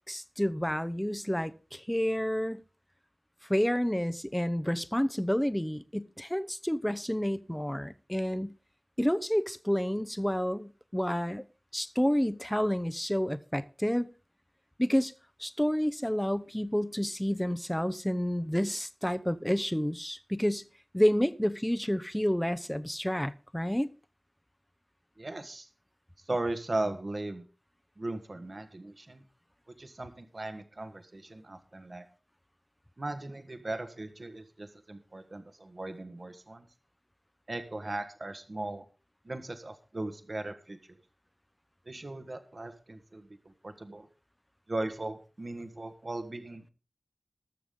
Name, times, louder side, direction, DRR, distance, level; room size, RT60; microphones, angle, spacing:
voice 1, 0.1-2.6 3.5-8.6 9.0-11.4 11.7-14.1 14.8-15.1 15.4-20.7 20.9-23.9, equal, 5° left, 0.8 m, -29 dB
voice 2, 25.2-25.7 26.2-27.4 28.0-29.2 29.8-32.1 33.0-36.7 37.5-38.8 39.2-40.8 41.8-44.1 44.7-46.7, right 2 dB, 50° right, 1.4 m, -38 dB
19.5 x 7.0 x 3.8 m
wide cardioid pair, 55°, 0 cm